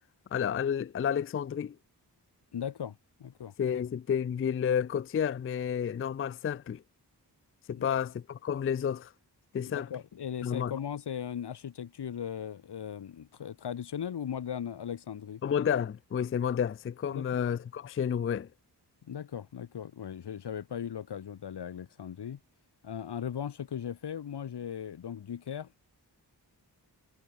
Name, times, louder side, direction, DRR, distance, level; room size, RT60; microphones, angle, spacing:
voice 1, 0.3-1.8 3.6-6.8 7.7-9.1 9.5-9.9 10.4-10.7 15.4-18.5, left 8 dB, 35° left, 0.4 m, -30 dB
voice 2, 2.5-3.5 7.7-8.0 9.7-15.4 17.1-17.4 19.0-22.4 22.8-25.7, left 8 dB, 70° left, 0.9 m, -38 dB
cardioid pair, 50°, 42 cm